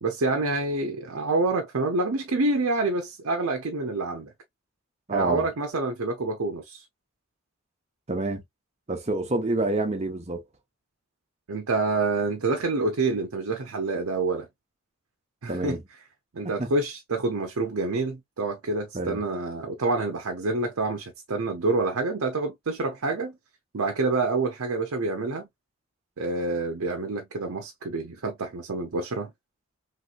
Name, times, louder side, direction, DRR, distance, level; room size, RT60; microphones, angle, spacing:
voice 1, 0.0-4.3 5.1-6.8 11.5-14.5 15.4-15.8 16.3-23.4 23.7-25.5 26.2-29.3, right 3 dB, 75° right, 0.6 m, -27 dB
voice 2, 5.1-5.4 8.1-8.4 8.9-10.4 15.5-15.8 16.4-16.7 18.9-19.2, right 2 dB, 30° right, 0.8 m, -27 dB
3.2 x 3.0 x 2.3 m
head